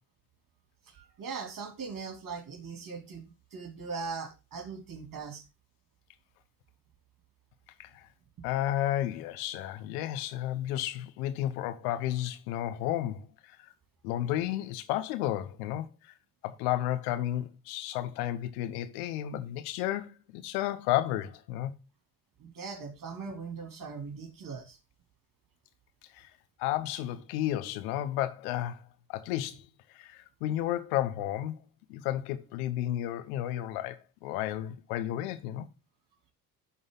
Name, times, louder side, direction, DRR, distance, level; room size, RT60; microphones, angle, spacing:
voice 1, 0.8-5.4 22.4-24.8, right 5 dB, 45° right, 2.8 m, -40 dB
voice 2, 8.4-13.7 14.0-16.1 16.4-21.7 26.1-26.3 26.6-28.8 29.1-29.6 29.9-31.6 31.9-35.7, left 13 dB, 80° left, 0.9 m, -32 dB
11.0 x 4.0 x 3.8 m
hypercardioid pair, 55°, 44 cm